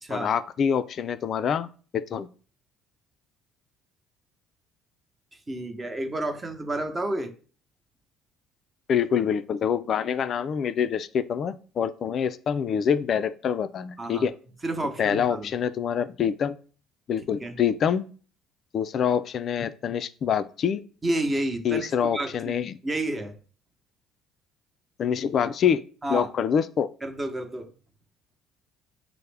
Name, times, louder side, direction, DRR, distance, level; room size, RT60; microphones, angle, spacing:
voice 1, 0.1-2.3 8.9-14.3 15.0-16.6 17.1-18.0 18.7-20.8 21.6-22.8 25.0-25.8 26.1-26.9, left 7 dB, 55° left, 13 dB, 0.3 m, -26 dB
voice 2, 5.5-7.3 14.0-14.3 14.6-15.5 17.4-17.6 21.0-21.9 22.1-22.3 22.8-23.4 26.0-26.3 27.0-27.7, right 1 dB, 20° right, 5 dB, 0.8 m, -30 dB
5.5 x 2.0 x 3.3 m, 0.40 s
supercardioid pair, 85°, 0 cm